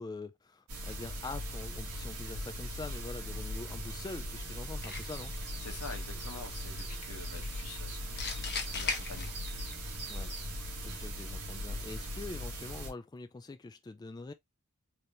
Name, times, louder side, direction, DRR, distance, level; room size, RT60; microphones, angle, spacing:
voice 1, 0.0-5.4 10.1-14.3, left 3 dB, 20° left, 0.3 m, -44 dB
sound 1, 0.7-12.9, equal, 90° right, 1.7 m, -39 dB
sound 2, 4.8-5.4 8.2-9.7, left 5 dB, 50° left, 1.0 m, -37 dB
sound 3, 5.1-10.5, right 4 dB, 55° right, 2.3 m, -50 dB
voice 2, 5.6-9.3, left 3 dB, 85° left, 1.3 m, -47 dB
4.3 x 3.3 x 2.5 m
head